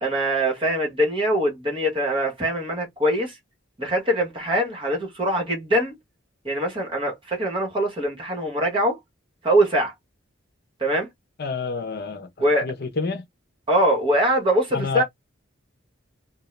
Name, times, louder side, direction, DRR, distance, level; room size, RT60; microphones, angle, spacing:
voice 1, 0.0-3.4 3.8-5.9 6.4-9.0 9.4-9.9 10.8-11.1 12.4-12.7 13.7-15.0, right 1 dB, 25° right, 1.3 m, -22 dB
voice 2, 11.4-12.3 12.6-13.2 14.7-15.0, left 4 dB, 55° left, 0.7 m, -28 dB
2.7 x 2.3 x 3.2 m
head